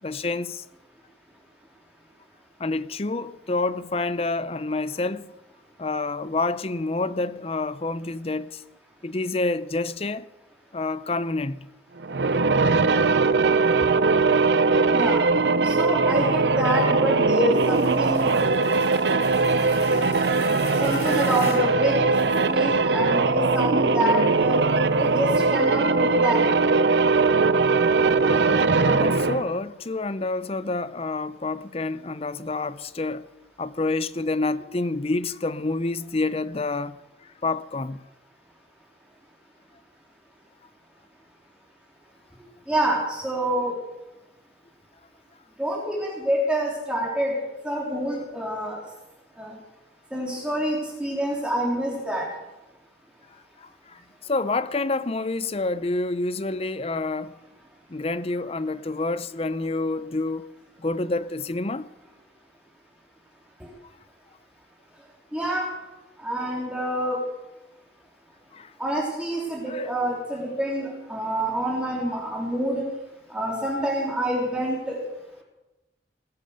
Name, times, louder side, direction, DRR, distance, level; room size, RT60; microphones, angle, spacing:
voice 1, 0.0-0.6 2.6-5.3 5.8-8.6 9.0-10.3 10.7-11.7 28.3-28.5 28.8-33.2 33.6-37.0 37.2-38.0 53.6-57.3 57.9-60.5 60.8-61.9 68.5-68.7 69.7-69.9, left 3 dB, 35° left, 0.6 m, -28 dB
sound 1, 12.0-29.5, right 4 dB, 75° right, 0.7 m, -21 dB
voice 2, 14.9-15.2 15.6-18.3 20.8-22.0 22.5-24.6 25.0-26.4 42.7-43.7 45.6-47.4 47.6-48.8 49.4-49.5 50.1-52.3 65.3-65.7 66.2-67.2 68.8-72.9 73.3-75.0, equal, 5° right, 3.6 m, -27 dB
Kriselige Bedrohung, 17.5-22.7, left 3 dB, 60° left, 3.7 m, -39 dB
19.5 x 10.5 x 6.6 m
head